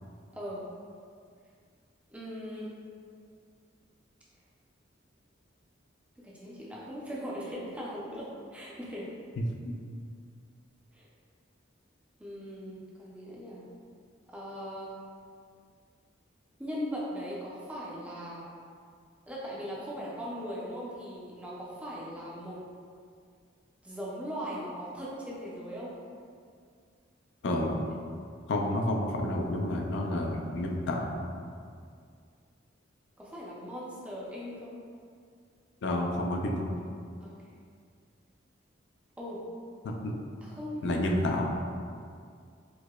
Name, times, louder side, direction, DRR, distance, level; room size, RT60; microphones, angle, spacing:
voice 1, 0.3-0.7 2.1-2.7 6.2-9.1 10.9-11.1 12.2-13.6 14.3-14.9 16.6-18.5 19.3-22.6 23.8-25.9 30.6-30.8 33.2-34.8 37.2-37.6 39.2-39.4 40.4-41.0, equal, 5° right, -6 dB, 0.5 m, -39 dB
voice 2, 27.4-27.9 28.5-31.3 35.8-36.7 39.8-40.1 40.8-41.6, left 1 dB, 65° left, 1 dB, 0.4 m, -30 dB
4.6 x 2.1 x 2.3 m, 2.2 s
head